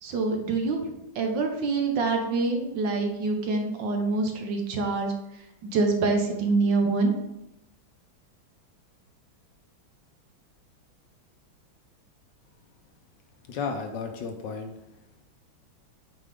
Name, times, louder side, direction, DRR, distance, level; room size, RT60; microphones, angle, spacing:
voice 1, 0.0-5.1 5.6-7.1, right 3 dB, 65° right, 3 dB, 1.6 m, -26 dB
voice 2, 13.5-14.7, left 5 dB, 70° left, 5 dB, 1.3 m, -33 dB
8.8 x 4.4 x 3.5 m, 0.88 s
omnidirectional pair, 2.3 m